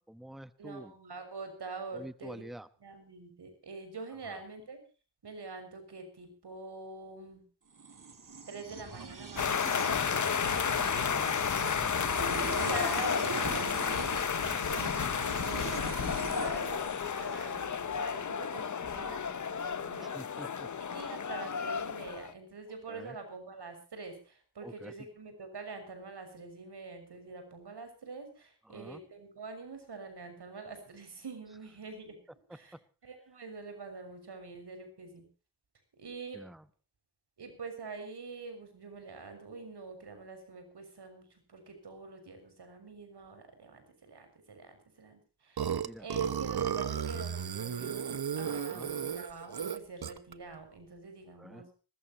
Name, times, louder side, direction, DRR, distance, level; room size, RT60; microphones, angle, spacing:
voice 1, 0.0-0.9 1.9-2.7 4.3-4.4 10.5-12.0 14.5-14.9 20.0-20.7 22.9-23.2 24.6-24.9 28.7-29.0 32.5-32.8 36.3-36.7 45.8-46.1 48.4-48.9 51.4-51.7, right 1 dB, ahead, 13 dB, 1.0 m, -48 dB
voice 2, 0.6-2.4 2.8-4.8 5.2-7.4 8.5-10.0 10.4-11.2 12.6-14.3 14.7-15.9 16.2-20.1 20.8-32.2 32.5-32.7 33.0-35.3 36.0-36.4 37.4-51.7, right 4 dB, 85° right, 7 dB, 6.5 m, -45 dB
sound 1, 7.8-17.5, right 5 dB, 55° right, 2.4 m, -41 dB
sound 2, 9.4-22.3, left 7 dB, 50° left, 0.8 m, -32 dB
Burping eructation, 45.6-50.3, right 8 dB, 70° right, 1.2 m, -34 dB
21.0 x 20.0 x 3.0 m, 0.37 s
wide cardioid pair, 80°, 39 cm